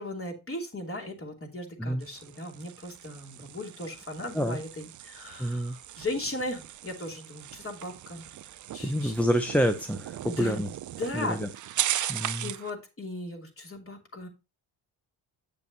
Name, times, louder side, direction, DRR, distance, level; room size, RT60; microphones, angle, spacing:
voice 1, 0.0-8.3 8.7-9.2 10.2-10.7 11.0-11.4 12.0-14.3, left 1 dB, 25° left, 1 dB, 2.8 m, -37 dB
sound 1, 2.0-12.7, right 12 dB, 40° right, 0.4 m, -38 dB
voice 2, 5.4-5.8 8.8-10.7 11.1-11.5 12.1-12.5, equal, 5° left, 5 dB, 0.6 m, -27 dB
8.2 x 6.9 x 2.8 m, 0.27 s
supercardioid pair, 70°, 48 cm